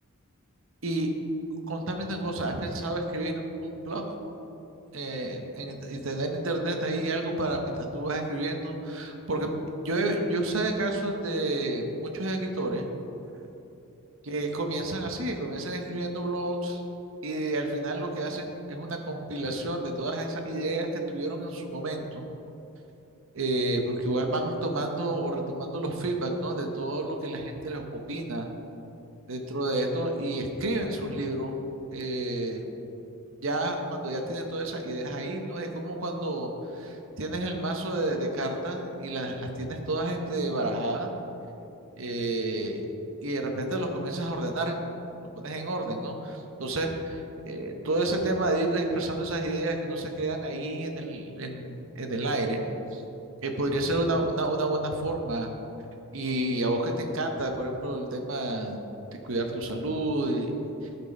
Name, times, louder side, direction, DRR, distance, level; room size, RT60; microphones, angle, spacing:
voice 1, 1.7-4.2 4.9-12.9 14.3-16.8 17.2-22.2 23.3-28.5 29.3-31.6 31.9-32.6 33.4-41.1 42.0-42.8 43.2-44.8 45.4-52.6 52.9-53.0 53.4-55.5 56.1-58.8 59.2-60.5, right 1 dB, 60° right, 3 dB, 1.0 m, -30 dB
11.5 x 4.5 x 5.3 m, 2.9 s
head